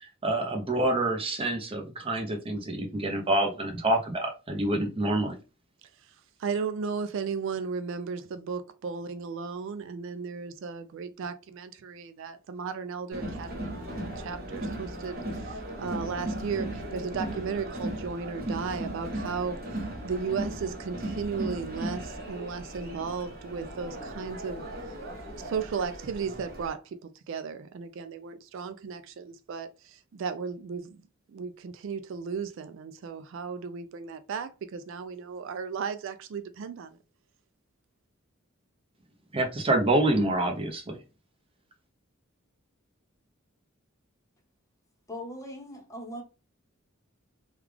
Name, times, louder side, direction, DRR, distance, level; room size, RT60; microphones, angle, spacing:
voice 1, 0.2-5.4 39.3-41.0, right 1 dB, 25° right, 0.7 m, -27 dB
voice 2, 6.4-24.9 25.4-31.0 31.3-37.0, right 5 dB, 65° right, 0.4 m, -35 dB
Crowd, 13.1-26.7, right 1 dB, 45° right, 1.3 m, -37 dB
voice 3, 45.1-46.2, equal, 15° left, 0.8 m, -39 dB
3.3 x 2.3 x 3.4 m
head